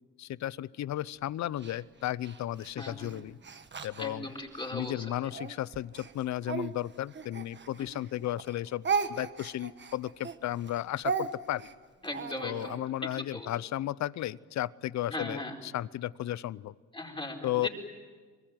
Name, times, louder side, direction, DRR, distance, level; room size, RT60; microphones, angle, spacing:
voice 1, 0.2-3.4 3.8-4.3 4.7-11.7 12.4-16.7 17.4-17.7, left 13 dB, 65° left, 20 dB, 0.7 m, -34 dB
Speech, 1.6-4.7 5.3-8.1 8.4-12.8, right 5 dB, 35° right, 1.5 m, -36 dB
voice 2, 2.7-3.1 4.0-5.3 7.8-7.9 12.0-12.7 13.3-13.5 15.1-15.6 16.9-17.7, left 1 dB, 15° left, 0 dB, 4.7 m, -38 dB
25.0 x 21.0 x 9.2 m, 1.5 s
cardioid pair, 90°, 30 cm